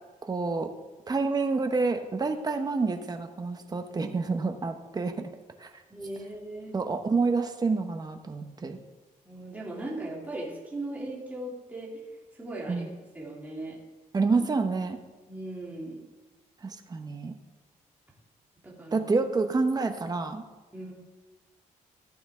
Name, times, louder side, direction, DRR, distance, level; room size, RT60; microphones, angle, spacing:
voice 1, 0.2-0.7 1.1-5.3 5.6-5.7 6.7-8.8 12.7-12.9 14.1-15.0 16.6-17.3 18.9-20.4, right 4 dB, 30° right, 6 dB, 1.1 m, -28 dB
voice 2, 5.9-6.7 9.2-12.0 12.3-12.9 13.1-13.8 15.3-16.0 18.6-19.1 20.7-20.9, right 1 dB, 10° right, -5 dB, 3.0 m, -38 dB
15.0 x 9.1 x 3.8 m, 1.2 s
cardioid pair, 130°, 14 cm